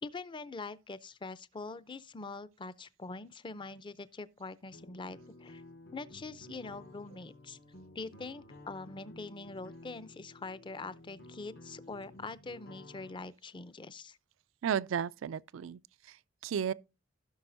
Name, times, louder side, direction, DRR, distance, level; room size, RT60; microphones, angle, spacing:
voice 1, 0.0-5.6 5.9-7.6 7.9-14.2, left 3 dB, 25° left, 0.5 m, -44 dB
sound 1, 4.7-13.1, left 1 dB, 55° left, 0.8 m, -53 dB
voice 2, 14.6-16.7, right 8 dB, 80° right, 0.4 m, -34 dB
16.0 x 6.1 x 2.6 m
head